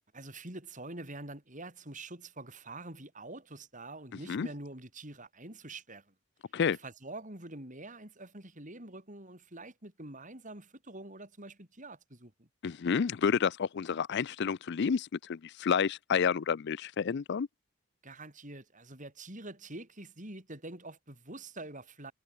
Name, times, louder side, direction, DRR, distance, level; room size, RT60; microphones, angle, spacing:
voice 1, 0.1-6.0 6.7-12.5 18.0-22.1, right 2 dB, 35° right, 6.4 m, -46 dB
voice 2, 12.6-17.5, left 6 dB, 50° left, 0.4 m, -30 dB
head